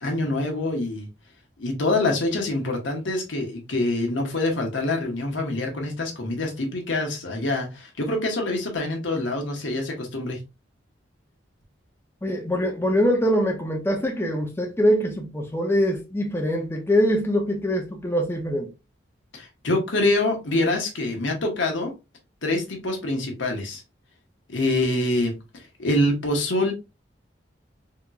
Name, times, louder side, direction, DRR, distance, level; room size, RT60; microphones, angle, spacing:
voice 1, 0.0-1.1 1.6-10.4 19.3-21.9 22.4-23.8 24.5-25.4 25.8-26.7, left 2 dB, 90° left, 1.1 m, -25 dB
voice 2, 12.2-18.7, equal, 15° left, 0.5 m, -23 dB
3.6 x 2.9 x 2.3 m
head